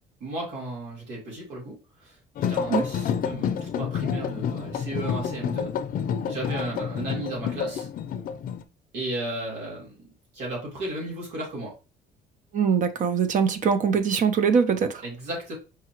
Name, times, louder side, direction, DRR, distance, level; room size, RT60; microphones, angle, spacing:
voice 1, 0.2-1.8 2.0-5.7 6.3-7.9 8.9-10.0 10.3-11.8 15.0-15.5, right 1 dB, 85° right, 2.4 m, -34 dB
sound 1, 2.4-8.6, left 7 dB, 55° left, 0.5 m, -29 dB
voice 2, 12.5-15.0, right 6 dB, 50° right, 0.6 m, -22 dB
4.8 x 2.8 x 2.9 m
cardioid pair, 110°, 17 cm